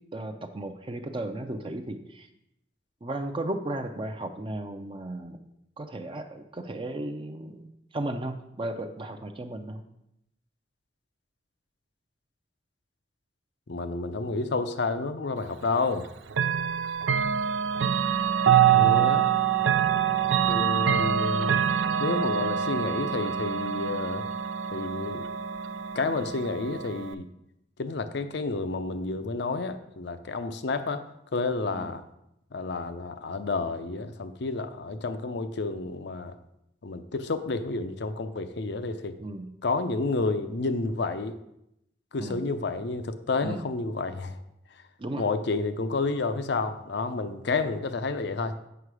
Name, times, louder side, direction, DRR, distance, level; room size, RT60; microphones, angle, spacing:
voice 1, 0.1-2.3 3.0-5.4 5.8-9.8 31.7-31.9 39.2-39.5 42.2-42.4 43.4-43.6 45.0-45.2, right 1 dB, 30° right, 6 dB, 0.5 m, -35 dB
voice 2, 13.7-16.1 18.7-19.3 20.5-21.6 22.0-24.2 24.7-25.3 25.9-27.3 27.8-32.0 32.5-36.4 36.8-39.2 39.6-41.4 42.1-44.4 45.2-48.6, left 3 dB, 65° left, 10 dB, 0.6 m, -30 dB
Chime / Clock, 16.3-27.1, right 8 dB, 85° right, 0.4 m, -25 dB
8.0 x 5.7 x 4.8 m, 0.82 s
head